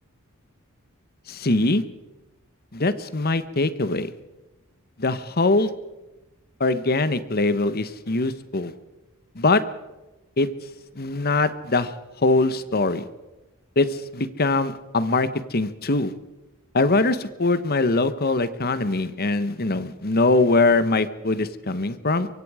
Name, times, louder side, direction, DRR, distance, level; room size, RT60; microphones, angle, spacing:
voice 1, 1.3-1.8 2.7-4.1 5.0-5.7 6.6-8.7 9.3-9.6 10.4-10.5 10.9-11.9 12.2-13.1 13.8-16.1 16.7-22.3, left 3 dB, 45° left, 13 dB, 1.2 m, -22 dB
24.5 x 24.0 x 5.0 m, 1.0 s
head